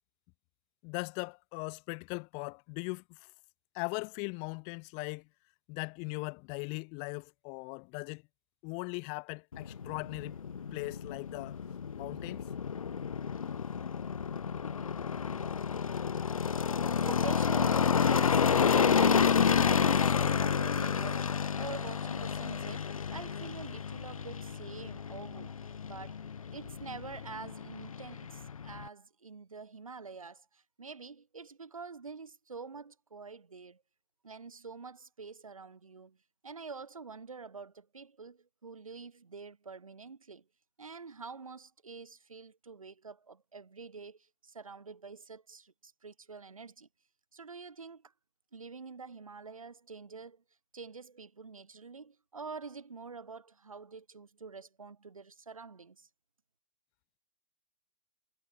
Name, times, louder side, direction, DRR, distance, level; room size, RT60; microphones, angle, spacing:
voice 1, 0.8-3.2 3.7-5.3 5.7-8.2 8.6-10.4 10.7-11.6 11.9-12.5, left 36 dB, 35° left, 0.9 m, -39 dB
sound 1, 9.5-28.9, left 6 dB, 85° left, 0.7 m, -30 dB
voice 2, 17.0-25.6 25.8-26.2 26.5-33.8 34.2-36.2 36.4-40.4 40.8-46.9 47.3-48.1 48.5-50.4 50.7-56.1, right 4 dB, 90° right, 3.3 m, -46 dB
hypercardioid pair, 120°, 17 cm